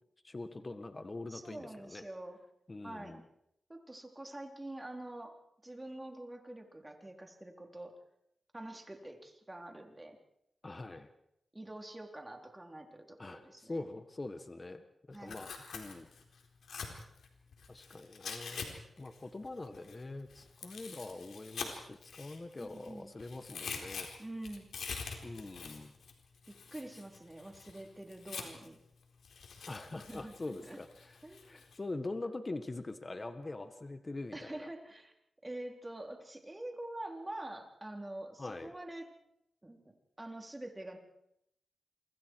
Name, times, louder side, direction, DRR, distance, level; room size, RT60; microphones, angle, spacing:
voice 1, 0.2-2.1 2.7-3.2 10.6-11.1 13.2-16.1 17.7-18.6 19.0-24.1 25.2-25.9 29.7-34.7 38.4-38.7, left 2 dB, 30° left, 8 dB, 1.6 m, -43 dB
voice 2, 1.3-2.4 2.8-3.2 3.7-5.3 5.6-8.0 8.5-10.2 11.5-13.8 15.1-15.4 22.6-23.1 24.2-24.7 26.5-28.8 30.0-30.3 30.7-30.8 31.2-31.6 34.3-35.1 35.4-39.1 39.6-39.8 40.2-41.0, right 1 dB, 15° right, 3 dB, 3.9 m, -46 dB
Tearing, 15.1-18.7 19.0-22.9 23.2-28.7 29.2-31.8, left 5 dB, 85° left, 4.1 m, -45 dB
28.0 x 25.0 x 4.8 m, 0.79 s
cardioid pair, 75°, 0 cm